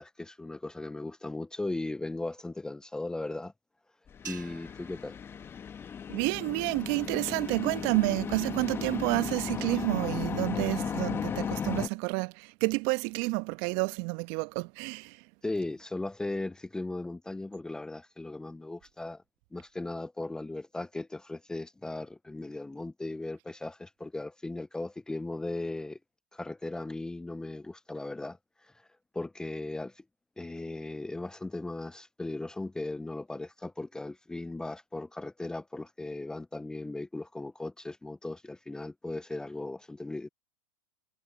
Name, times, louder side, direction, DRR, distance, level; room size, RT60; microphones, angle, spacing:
voice 1, 0.0-3.5 4.2-5.2 15.4-19.2 19.5-26.0 26.3-28.9 29.1-30.0 30.4-40.3, left 2 dB, 5° left, 0.6 m, -37 dB
sound 1, 4.1-11.9, left 7 dB, 25° left, 1.5 m, -35 dB
sound 2, 4.2-6.7, right 7 dB, 85° right, 6.4 m, -50 dB
voice 2, 6.1-15.2, right 30 dB, 50° right, 1.3 m, -30 dB
hypercardioid pair, 95°, 10 cm